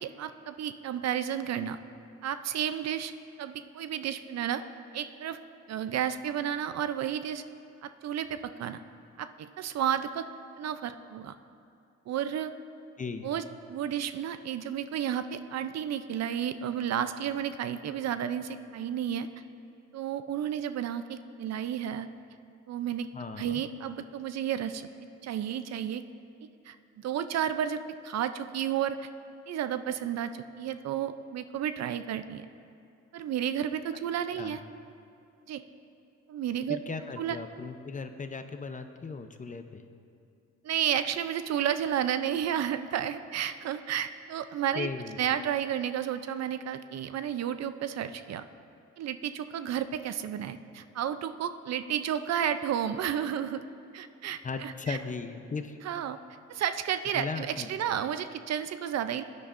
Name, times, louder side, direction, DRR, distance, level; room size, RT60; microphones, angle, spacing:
voice 1, 0.0-1.8 2.2-3.1 3.4-4.6 4.9-5.4 5.7-7.4 7.8-8.8 9.2-10.3 10.6-11.3 12.1-12.5 13.2-13.4 13.7-19.3 19.9-22.1 22.7-23.1 23.4-24.9 25.2-26.0 26.7-29.1 29.5-32.5 33.1-34.6 35.5-35.6 36.3-36.8 37.2-37.4 40.6-44.9 45.2-48.4 49.0-53.6 53.9-55.0 55.8-56.2 56.5-59.2, right 9 dB, 60° right, 11 dB, 0.5 m, -32 dB
voice 2, 23.1-23.6 34.4-34.6 36.7-39.8 44.8-45.2 54.4-55.8 57.1-57.7, left 4 dB, 25° left, 8 dB, 0.6 m, -37 dB
16.0 x 9.7 x 2.5 m, 2.6 s
cardioid pair, 90°, 30 cm